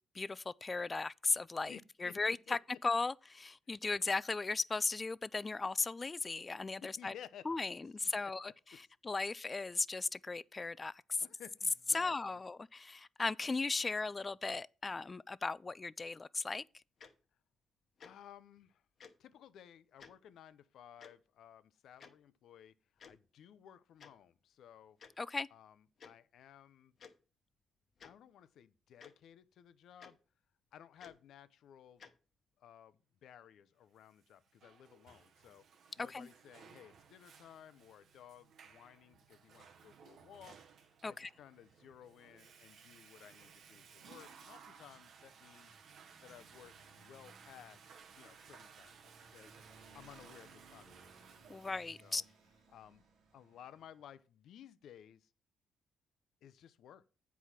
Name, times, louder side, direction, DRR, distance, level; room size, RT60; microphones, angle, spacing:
voice 1, 0.1-7.1 7.5-8.5 9.0-11.0 11.9-16.6 25.2-25.5 36.0-36.3 41.0-41.3 51.5-52.2, left 3 dB, 25° left, 0.3 m, -37 dB
voice 2, 1.7-2.6 6.8-7.5 8.2-8.8 11.2-12.4 18.0-18.8 19.2-22.8 23.0-25.0 25.5-26.9 28.0-30.2 30.7-32.0 32.6-35.6 36.0-40.6 41.0-45.8 46.2-49.5 49.9-51.1 52.0-52.2 52.7-53.0 53.3-55.3 56.4-57.0, left 10 dB, 75° left, 0.6 m, -57 dB
Tick-tock, 17.0-17.1 18.0-18.1 19.0-19.1 20.0-20.1 21.0-21.1 22.0-22.1 23.0-23.2 24.0-24.1 25.0-25.1 26.0-26.1 27.0-27.1 28.0-28.1 29.0-29.1 30.0-30.1 31.0-31.2 32.0-32.1, left 6 dB, 55° left, 1.0 m, -54 dB
Water / Toilet flush, 34.2-51.7, right 6 dB, 65° right, 0.8 m, -59 dB
Motorcycle, 43.4-54.1, right 3 dB, 80° right, 1.8 m, -64 dB
8.2 x 4.7 x 5.8 m
cardioid pair, 90°, 0 cm